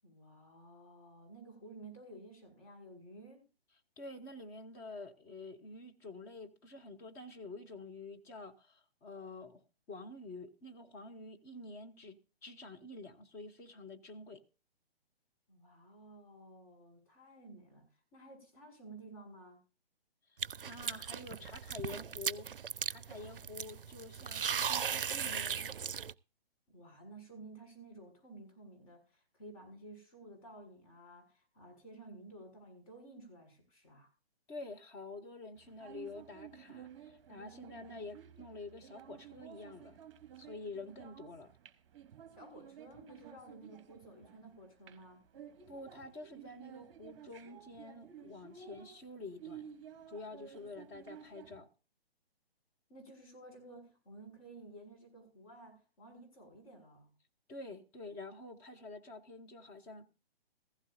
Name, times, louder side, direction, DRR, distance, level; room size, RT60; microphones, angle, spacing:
voice 1, 0.0-3.4 15.5-19.6 26.7-34.1 42.3-45.2 52.9-57.1, right 2 dB, 35° left, 6.6 m, -54 dB
voice 2, 4.0-14.4 20.6-22.5 22.8-25.7 34.5-40.0 40.4-41.5 45.7-49.6 50.1-51.7 57.5-60.1, left 3 dB, 10° left, 0.7 m, -48 dB
sound 1, 20.4-26.1, right 7 dB, 60° right, 0.5 m, -38 dB
sound 2, 35.6-51.6, right 9 dB, 30° right, 1.2 m, -54 dB
15.5 x 15.5 x 2.6 m
figure-of-eight pair, 130°, 31 cm